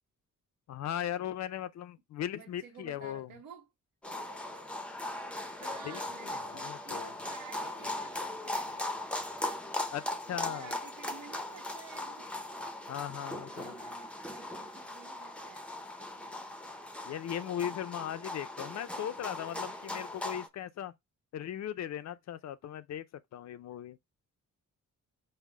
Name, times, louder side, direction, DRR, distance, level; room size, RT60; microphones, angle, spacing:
voice 1, 0.7-3.3 5.8-7.1 9.9-10.7 12.9-13.8 17.1-20.9 21.3-23.0 23.3-24.0, left 10 dB, 55° left, 0.4 m, -38 dB
voice 2, 2.3-3.7 5.6-9.3 10.3-12.4 13.5-16.5 18.6-19.1 19.5-19.6, right 7 dB, 90° right, 1.0 m, -53 dB
sound 1, 4.0-20.5, left 2 dB, 5° left, 0.5 m, -39 dB
5.5 x 2.0 x 4.7 m
wide cardioid pair, 170°, 32 cm